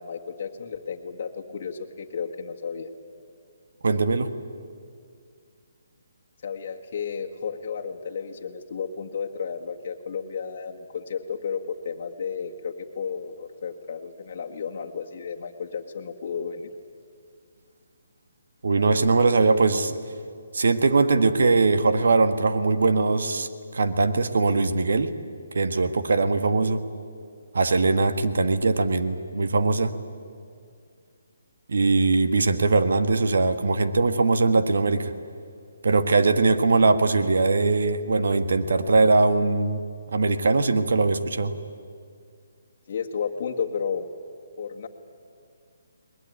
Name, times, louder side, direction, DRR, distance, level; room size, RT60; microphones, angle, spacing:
voice 1, 0.0-2.9 6.4-16.7 42.9-44.1 44.6-44.9, left 6 dB, 45° left, 1 dB, 1.7 m, -33 dB
voice 2, 3.8-4.3 18.6-20.0 20.5-23.5 23.7-25.1 25.5-26.8 27.5-30.0 31.7-35.1 35.8-39.8 40.1-41.5, right 3 dB, 75° right, 10 dB, 1.6 m, -21 dB
21.0 x 20.5 x 9.5 m, 2.3 s
hypercardioid pair, 160°, 0 cm